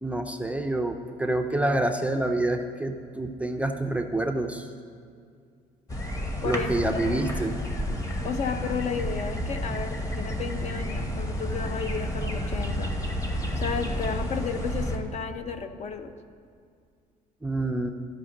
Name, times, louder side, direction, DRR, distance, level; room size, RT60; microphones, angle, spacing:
voice 1, 0.0-4.7 6.4-7.5 17.4-17.9, right 1 dB, 10° right, 4 dB, 0.4 m, -27 dB
sound 1, 5.9-15.0, equal, 20° left, 1.0 m, -31 dB
voice 2, 6.4-7.2 8.2-12.9 13.6-16.1, left 6 dB, 40° left, 8 dB, 0.6 m, -33 dB
13.5 x 5.1 x 3.8 m, 2.2 s
cardioid pair, 110°, 17 cm